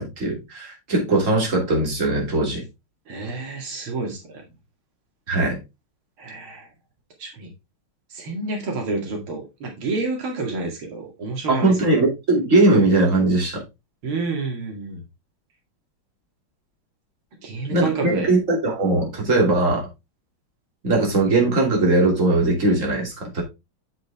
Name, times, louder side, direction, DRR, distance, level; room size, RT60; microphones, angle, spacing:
voice 1, 0.0-2.6 5.3-5.6 11.5-13.6 17.7-19.9 20.8-23.4, right 2 dB, 35° right, 3.2 m, -20 dB
voice 2, 3.1-4.4 6.2-6.7 7.2-7.5 8.1-11.9 14.0-15.0 17.4-18.3, right 3 dB, 85° right, 3.0 m, -29 dB
7.8 x 6.9 x 3.5 m
omnidirectional pair, 2.3 m